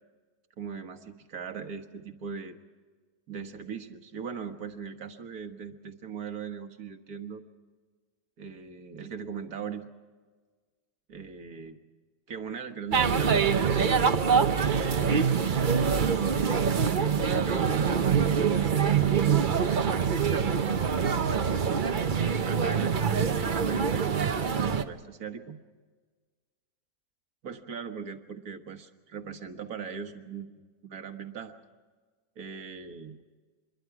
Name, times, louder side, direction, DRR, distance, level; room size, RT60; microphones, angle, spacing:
voice 1, 0.6-2.6 3.3-7.4 8.4-9.9 11.1-11.7 12.3-13.9 14.6-16.2 17.0-19.5 20.3-22.1 22.5-25.6 27.4-31.5 32.4-33.2, right 6 dB, 70° right, 6 dB, 1.9 m, -40 dB
sound 1, 12.9-24.8, right 6 dB, 40° right, 0.8 m, -25 dB
26.5 x 22.0 x 4.8 m, 1.4 s
omnidirectional pair, 1.7 m